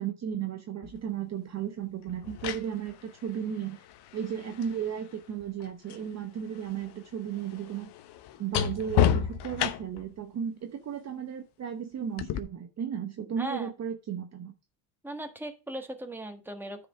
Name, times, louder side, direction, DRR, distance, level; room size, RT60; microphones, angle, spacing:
voice 1, 0.0-3.8 4.1-7.9 8.4-14.5, right 8 dB, 35° right, 6 dB, 1.0 m, -35 dB
sound 1, 0.8-1.0 2.1-6.1 6.4-10.1 12.2-12.4, left 9 dB, 60° left, 1.0 m, -32 dB
voice 2, 13.4-13.7 15.0-16.9, right 1 dB, 5° right, 4 dB, 1.5 m, -38 dB
9.5 x 5.0 x 4.9 m, 0.30 s
supercardioid pair, 105°, 46 cm